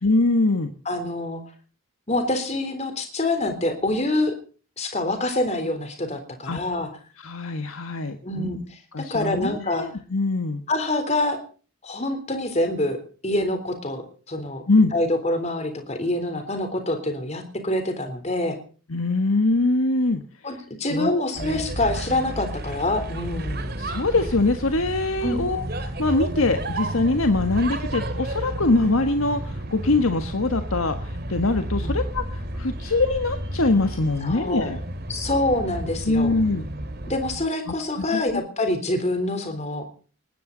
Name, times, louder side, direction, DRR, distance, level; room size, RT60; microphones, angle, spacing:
voice 1, 0.0-0.7 6.4-6.6 7.2-8.6 8.9-10.6 14.7-14.9 18.9-20.2 20.9-21.2 23.8-34.8 36.0-36.7 37.7-38.4, left 2 dB, 80° left, 7 dB, 1.5 m, -23 dB
voice 2, 0.9-1.4 2.1-4.3 4.8-6.9 8.2-9.9 10.7-11.4 11.8-13.0 13.2-14.6 14.9-18.6 20.4-23.7 25.2-25.4 31.8-31.9 34.2-34.7 35.1-36.3 37.1-39.8, left 1 dB, 30° left, 7 dB, 3.6 m, -26 dB
sound 1, 21.3-37.4, right 1 dB, 50° right, 2.6 m, -32 dB
20.0 x 16.0 x 4.0 m, 0.39 s
head